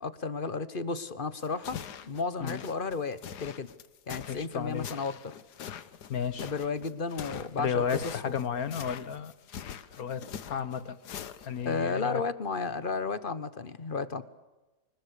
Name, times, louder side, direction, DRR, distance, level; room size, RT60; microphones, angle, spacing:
voice 1, 0.0-1.8 2.0-3.7 4.1-5.3 6.4-8.1 11.6-14.2, left 4 dB, 35° left, 14 dB, 1.3 m, -33 dB
sound 1, 1.4-11.7, left 8 dB, 90° left, 1.6 m, -43 dB
voice 2, 4.3-4.9 6.1-6.5 7.6-9.3 9.9-11.0 11.4-12.2, left 7 dB, 65° left, 14 dB, 1.6 m, -33 dB
25.5 x 21.0 x 8.4 m, 1.1 s
omnidirectional pair, 1.7 m